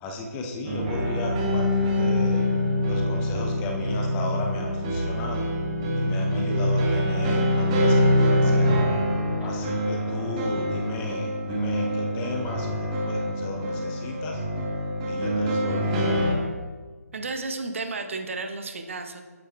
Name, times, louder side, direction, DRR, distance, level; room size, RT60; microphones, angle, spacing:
voice 1, 0.0-2.5 2.9-5.5 5.9-8.8 9.4-14.4 15.1-16.4, left 2 dB, 15° left, 2 dB, 0.6 m, -35 dB
sound 1, 0.6-16.3, equal, 25° right, 1.1 m, -25 dB
voice 2, 17.1-19.2, right 3 dB, 55° right, 5 dB, 0.8 m, -33 dB
8.4 x 8.3 x 2.2 m, 1.5 s
figure-of-eight pair, 145°, 9 cm